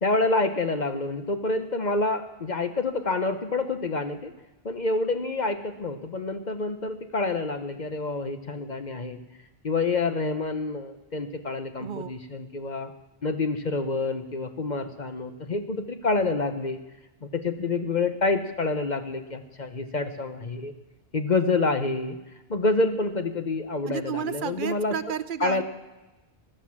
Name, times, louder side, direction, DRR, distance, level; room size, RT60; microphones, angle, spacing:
voice 1, 0.0-4.3 4.6-9.2 9.6-12.9 13.2-16.8 17.2-20.7 21.1-22.2 22.5-25.0 25.4-25.6, left 3 dB, 45° left, 8 dB, 1.0 m, -27 dB
voice 2, 11.8-12.1 23.9-25.6, right 8 dB, 55° right, 13 dB, 0.9 m, -32 dB
16.0 x 12.0 x 7.3 m, 1.0 s
omnidirectional pair, 1.1 m